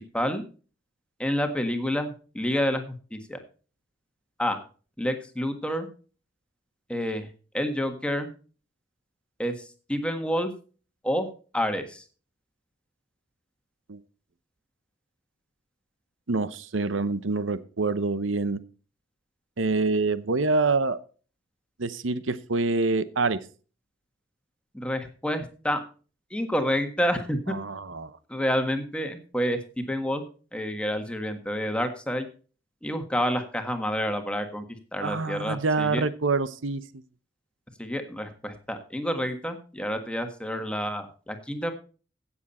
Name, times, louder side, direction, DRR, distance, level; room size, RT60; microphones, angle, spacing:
voice 1, 1.2-3.4 4.4-4.6 5.0-5.9 6.9-7.3 7.5-8.3 9.4-10.5 11.0-11.3 11.5-12.0 24.7-25.8 26.3-27.5 28.3-29.6 29.9-30.2 30.5-32.3 32.8-34.6 34.9-36.0 37.8-41.7, equal, 5° left, 7 dB, 1.6 m, -28 dB
voice 2, 16.3-18.6 19.6-21.0 21.8-23.4 27.5-28.2 35.0-36.8, right 3 dB, 85° right, 15 dB, 0.8 m, -26 dB
16.0 x 7.3 x 4.3 m, 0.37 s
head